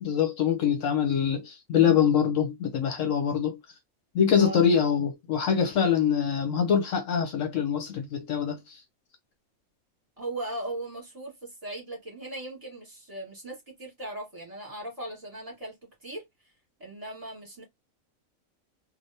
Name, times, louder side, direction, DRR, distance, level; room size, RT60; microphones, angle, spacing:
voice 1, 0.0-3.6 4.1-8.8, left 7 dB, 70° left, 1.0 m, -24 dB
voice 2, 10.2-15.8 16.0-16.2 16.8-17.6, right 1 dB, 25° right, 1.8 m, -38 dB
3.3 x 2.5 x 2.7 m
omnidirectional pair, 1.5 m